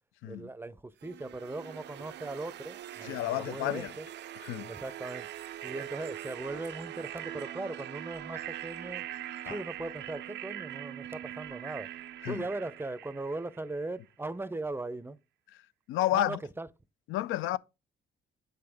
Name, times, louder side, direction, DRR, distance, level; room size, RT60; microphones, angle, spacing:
voice 1, 0.2-4.1 4.7-5.3 5.6-9.1 9.4-11.9 12.2-15.2 16.1-16.7, right 2 dB, 10° right, 0.5 m, -39 dB
sound 1, 1.0-13.9, right 12 dB, 60° right, 0.4 m, -42 dB
voice 2, 3.0-3.9 4.4-4.7 9.5-9.6 12.2-12.4 15.9-16.4 17.1-17.6, left 14 dB, 85° left, 0.4 m, -31 dB
7.6 x 5.3 x 3.4 m
cardioid pair, 90°, 20 cm